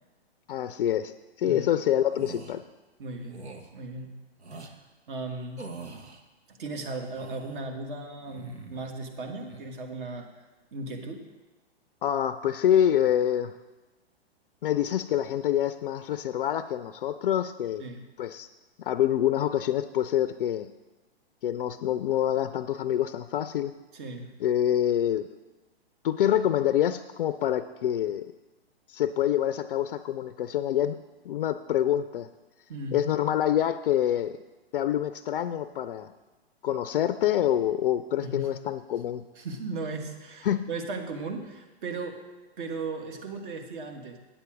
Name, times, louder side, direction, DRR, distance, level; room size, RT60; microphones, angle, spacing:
voice 1, 0.5-1.1 1.4-2.6 12.0-13.5 14.6-17.8 18.2-18.5 18.8-20.7 21.4-23.7 24.4-25.3 26.0-28.3 28.9-31.0 31.2-32.3 32.9-34.4 34.7-36.1 36.6-39.2 40.4-40.7, left 11 dB, 60° left, 12 dB, 0.5 m, -26 dB
voice 2, 1.4-1.7 3.0-4.1 4.5-4.6 5.1-5.9 6.5-10.3 10.7-11.3 17.8-18.1 23.9-24.3 32.7-33.0 38.2-38.5 39.3-42.2 42.6-44.2, right 3 dB, 50° right, 4 dB, 1.6 m, -37 dB
sound 1, 2.1-2.5 3.3-3.7 4.4-4.7 5.6-6.2 6.9-7.6 8.2-8.9 9.2-9.6, right 3 dB, 85° right, 1.2 m, -44 dB
9.1 x 8.0 x 4.8 m, 1.2 s
hypercardioid pair, 120°, 32 cm